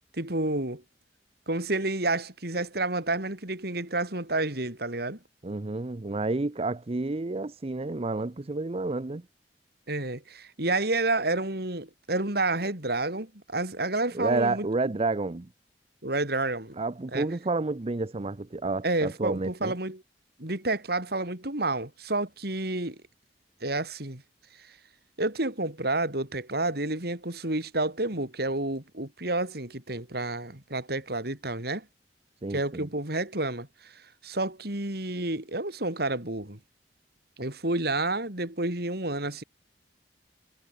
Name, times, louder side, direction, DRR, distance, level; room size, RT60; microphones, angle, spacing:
voice 1, 0.1-0.8 1.5-5.2 9.9-14.7 16.0-16.8 17.1-17.3 18.8-20.0 20.4-23.0 23.6-24.2 24.6-24.7 25.2-31.9 32.5-36.6 37.4-39.4, right 2 dB, 60° right, 4.5 m, -30 dB
voice 2, 5.4-9.2 14.1-15.5 16.8-19.7 32.4-32.9, right 3 dB, 35° right, 0.7 m, -30 dB
head